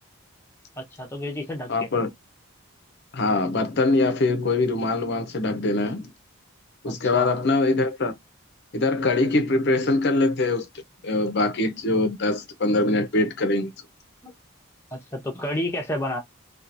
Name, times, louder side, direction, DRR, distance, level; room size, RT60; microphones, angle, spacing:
voice 1, 0.8-1.9 6.8-7.3 14.2-14.3 14.9-16.2, left 1 dB, 10° left, 0.7 m, -30 dB
voice 2, 1.7-2.1 3.1-6.1 6.8-8.2 8.7-10.7 11.0-13.7, left 2 dB, 50° left, 0.6 m, -23 dB
2.9 x 2.3 x 2.5 m
head